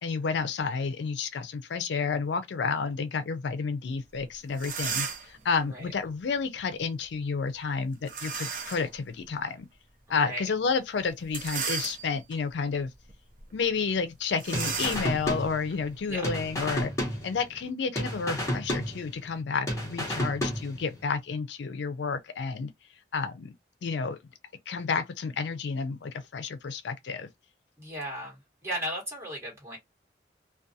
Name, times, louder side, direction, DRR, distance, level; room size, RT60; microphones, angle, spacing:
voice 1, 0.0-9.7 10.1-12.9 13.5-16.9 17.2-22.7 23.1-23.5 23.8-24.2 24.7-27.3, left 5 dB, 80° left, 0.4 m, -30 dB
sound 1, 4.2-4.3 4.5-5.4 8.1-8.9 9.5-9.6 11.2-12.3 12.9-13.1 13.4-13.5 14.4-16.8, right 6 dB, 45° right, 0.6 m, -35 dB
voice 2, 10.2-10.5 16.1-16.2 27.8-29.8, right 1 dB, 15° right, 1.3 m, -36 dB
sound 2, 14.5-16.0 16.2-17.7 17.9-19.4 19.7-21.0, equal, 15° left, 0.9 m, -32 dB
2.4 x 2.2 x 2.7 m
head